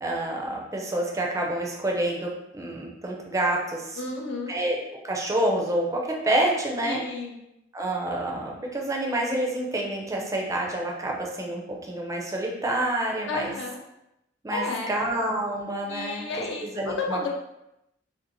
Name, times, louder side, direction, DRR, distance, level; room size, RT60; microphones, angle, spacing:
voice 1, 0.0-4.0 4.5-4.8 5.0-7.0 7.7-13.6 14.4-17.3, right 1 dB, 15° right, -1 dB, 0.4 m, -28 dB
voice 2, 4.0-4.6 6.8-7.4 13.3-13.8 14.5-15.0 15.9-17.3, left 3 dB, 70° left, 1 dB, 0.4 m, -32 dB
2.5 x 2.0 x 3.0 m, 0.85 s
head